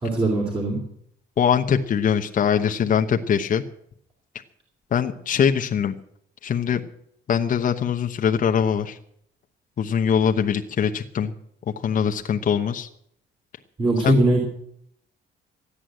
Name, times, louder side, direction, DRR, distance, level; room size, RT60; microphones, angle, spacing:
voice 1, 0.0-0.8 13.8-14.4, right 2 dB, 25° right, -1 dB, 3.3 m, -21 dB
voice 2, 1.4-3.6 4.9-5.9 6.4-6.8 7.3-9.0 9.8-11.3 11.8-12.9 14.0-14.1, left 7 dB, 40° left, 5 dB, 0.9 m, -22 dB
14.0 x 9.8 x 7.7 m, 0.69 s
cardioid pair, 140°, 20 cm